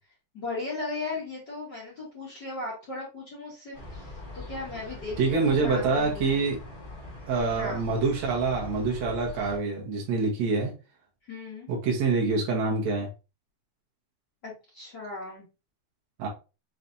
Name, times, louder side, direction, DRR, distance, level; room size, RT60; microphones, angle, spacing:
voice 1, 0.3-4.0 4.3-6.4 7.6-7.8 11.3-11.7 14.4-15.4, left 3 dB, 45° left, -5 dB, 1.8 m, -37 dB
sound 1, 3.7-9.6, left 2 dB, 25° left, 1.1 m, -42 dB
voice 2, 5.2-6.6 7.3-10.7 11.7-13.1 16.2-16.3, right 4 dB, 70° right, -1 dB, 2.3 m, -26 dB
5.8 x 3.2 x 2.6 m, 0.30 s
omnidirectional pair, 3.4 m